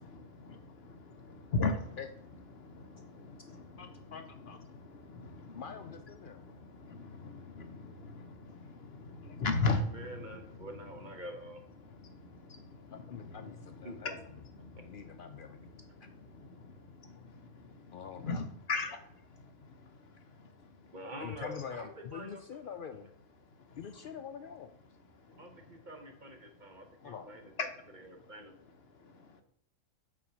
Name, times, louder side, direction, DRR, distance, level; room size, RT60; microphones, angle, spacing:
voice 1, 0.0-2.0 2.5-11.1 11.8-20.9 23.4-24.1 25.1-25.9 26.5-27.1 27.6-27.7 28.1-28.3 28.6-29.4, left 3 dB, 55° left, 6 dB, 0.9 m, -40 dB
voice 2, 3.8-4.6 5.5-6.4 9.2-9.4 12.9-14.1 14.7-15.6 16.0-16.1 17.9-18.4 20.1-20.2 21.2-23.1 23.8-24.8 27.0-27.3, left 7 dB, 85° left, 7 dB, 0.4 m, -45 dB
voice 3, 9.9-11.6 13.8-14.0 20.9-22.4 25.4-27.4 28.1-28.5, right 1 dB, 40° right, 4 dB, 1.0 m, -46 dB
6.0 x 4.2 x 6.1 m, 0.71 s
omnidirectional pair, 1.4 m